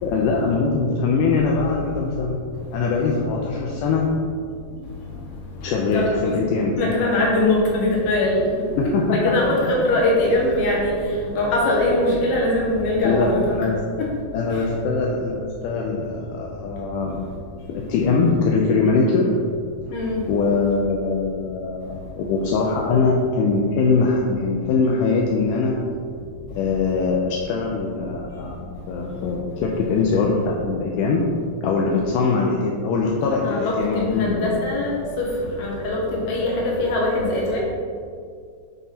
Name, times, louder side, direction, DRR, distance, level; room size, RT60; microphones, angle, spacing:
voice 1, 0.0-2.4 2.7-4.1 5.6-6.8 8.7-9.4 9.8-9.9 13.0-13.8 14.3-17.2 17.7-19.4 20.3-25.9 26.5-31.3 31.6-34.6, left 4 dB, 85° left, -1 dB, 1.8 m, -22 dB
voice 2, 5.9-6.3 6.8-8.4 8.8-11.0 11.3-13.4 14.0-14.1 14.5-14.6 19.9-20.2 33.4-35.3 35.6-37.6, left 2 dB, 55° left, -4 dB, 1.8 m, -22 dB
9.3 x 3.6 x 4.3 m, 2.2 s
omnidirectional pair, 4.3 m